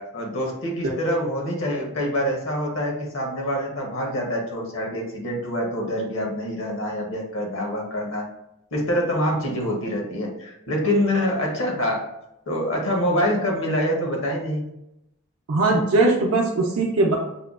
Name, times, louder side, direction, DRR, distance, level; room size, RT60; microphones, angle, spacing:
voice 1, 0.0-8.2 8.7-12.0 12.5-14.6, equal, 60° left, 0 dB, 0.9 m, -25 dB
voice 2, 15.5-17.2, right 2 dB, 75° right, -3 dB, 0.5 m, -20 dB
5.4 x 2.2 x 2.4 m, 0.86 s
head